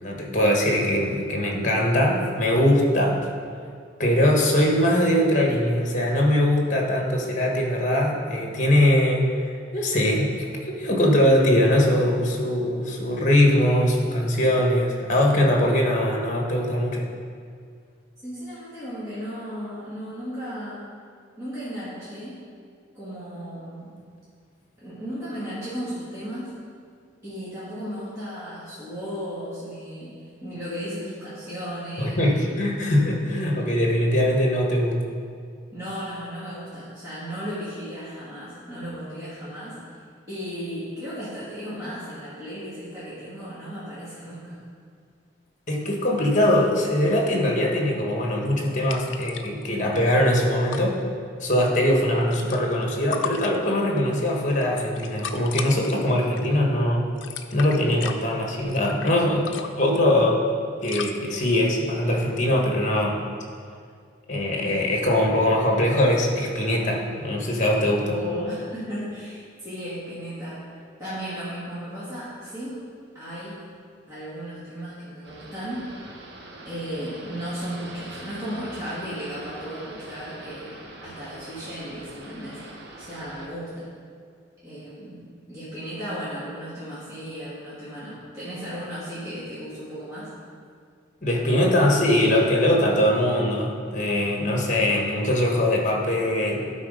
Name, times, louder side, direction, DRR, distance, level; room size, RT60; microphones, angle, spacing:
voice 1, 0.0-3.2 4.0-17.1 32.0-35.0 45.7-51.0 51.4-57.1 57.5-60.4 60.8-63.2 64.3-68.2 91.2-96.7, left 1 dB, 40° left, 0 dB, 1.2 m, -22 dB
voice 2, 18.2-20.9 21.4-22.4 22.9-24.0 24.8-26.5 27.2-32.6 35.7-39.8 40.3-44.6 68.0-70.6 71.0-72.9 73.1-73.6 74.1-75.9 76.6-80.7 81.0-82.6 83.0-83.9 84.6-85.2 85.5-90.3, equal, 15° right, -12 dB, 2.1 m, -35 dB
sound 1, 48.9-49.7 49.9-50.0 50.2-50.8 51.9-52.8 53.1-54.0 54.5-55.9 56.4-56.6 57.0-59.1 59.4-60.0 60.8-61.2, left 6 dB, 80° left, 0.5 m, -35 dB
sound 2, 75.2-83.5, right 2 dB, 60° right, 1.0 m, -43 dB
11.5 x 4.1 x 5.1 m, 2.2 s
head